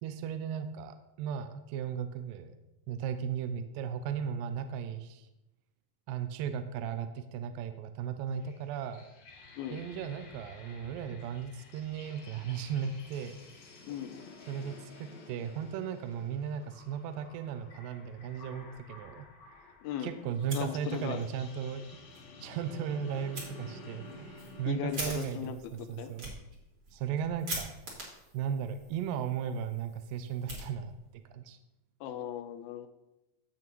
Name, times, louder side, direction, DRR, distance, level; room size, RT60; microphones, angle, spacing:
voice 1, 0.0-2.6 2.9-5.3 6.1-9.0 9.7-13.4 14.5-19.3 20.0-22.0 22.4-26.3 26.9-27.7 28.3-30.9 31.3-31.6, right 7 dB, 80° right, 9 dB, 2.1 m, -36 dB
sound 1, 8.3-25.2, left 2 dB, 60° left, 2.3 m, -52 dB
voice 2, 13.9-14.3 19.8-20.1 20.5-21.2 24.7-26.1 32.0-32.9, left 10 dB, 85° left, 10 dB, 2.5 m, -38 dB
Fire, 20.3-21.3 21.6-21.7 22.1-22.2 23.3-23.5 24.0-31.2, right 2 dB, 40° right, 2.7 m, -44 dB
15.5 x 6.1 x 3.0 m, 0.93 s
omnidirectional pair, 4.3 m